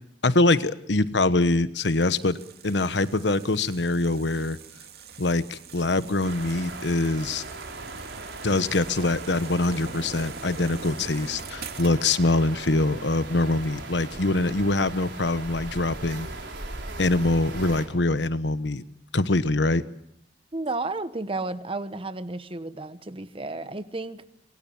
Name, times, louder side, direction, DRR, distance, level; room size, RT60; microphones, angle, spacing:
voice 1, 0.2-2.4 2.6-4.6 5.2-7.4 8.4-16.3 17.0-18.8 19.1-19.8, left 2 dB, 80° left, 13 dB, 1.2 m, -24 dB
sound 1, 1.8-12.2, right 5 dB, 60° right, 2.4 m, -44 dB
sound 2, 6.2-17.9, right 2 dB, 85° right, 5.1 m, -39 dB
voice 2, 20.5-24.2, right 2 dB, 30° right, 12 dB, 1.2 m, -32 dB
26.5 x 22.0 x 7.2 m, 0.72 s
head